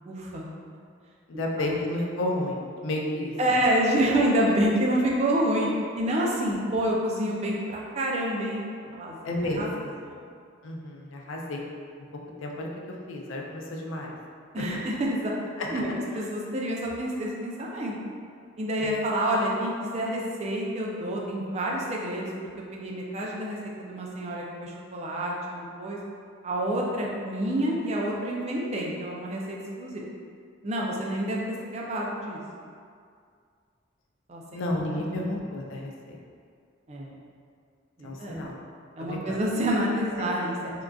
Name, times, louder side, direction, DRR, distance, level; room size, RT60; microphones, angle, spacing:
voice 1, 0.1-0.4 1.3-1.7 3.4-5.7 6.0-8.7 8.9-9.2 9.5-9.7 10.0-10.2 14.5-15.3 15.7-17.9 18.6-22.3 22.7-26.0 26.4-30.0 30.6-31.4 31.6-32.4 34.3-34.4 34.9-35.2 36.9-37.1 38.0-38.5 39.0-40.7, right 1 dB, 35° right, -3 dB, 0.4 m, -28 dB
voice 2, 1.3-3.3 9.2-10.0 10.6-11.6 12.4-12.7 13.1-14.2 14.6-14.8 15.6-15.7 16.1-16.2 18.8-18.9 34.5-36.2 38.0-38.5 39.0-39.4 40.1-40.3, left 1 dB, 80° left, -1 dB, 0.4 m, -31 dB
3.7 x 2.4 x 2.3 m, 2.2 s
head